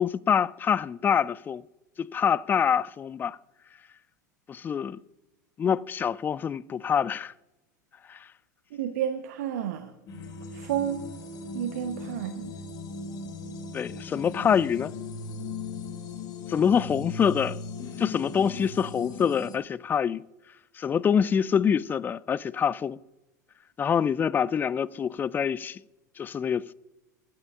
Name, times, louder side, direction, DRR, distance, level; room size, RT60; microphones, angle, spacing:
voice 1, 0.0-1.6 2.0-3.4 4.5-5.0 5.6-7.3 8.1-8.2 13.7-14.9 16.5-17.6 18.0-20.2 20.8-23.0 23.8-25.8 26.2-26.6, left 7 dB, 20° left, 0.3 m, -25 dB
voice 2, 8.7-9.9 10.5-11.0 11.5-12.5, right 10 dB, 60° right, 0.9 m, -30 dB
sound 1, 10.1-19.6, left 4 dB, 40° left, 1.6 m, -38 dB
21.0 x 9.8 x 2.4 m
figure-of-eight pair, 85°, 10 cm